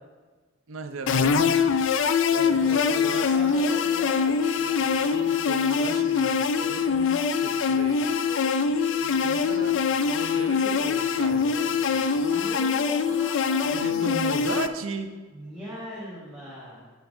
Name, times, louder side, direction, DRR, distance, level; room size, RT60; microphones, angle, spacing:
voice 1, 0.7-1.5 2.3-3.5 5.5-8.1 9.2-9.8 10.4-11.6 12.0-12.8 13.7-15.1, right 3 dB, 75° right, 7 dB, 0.6 m, -36 dB
sound 1, 1.1-14.7, left 6 dB, 60° left, 0.3 m, -23 dB
voice 2, 2.3-2.9 3.3-5.4 9.0-9.7 11.3-11.6 12.3-14.0 15.3-16.9, left 1 dB, 5° right, -10 dB, 1.5 m, -41 dB
10.0 x 5.7 x 2.7 m, 1.3 s
head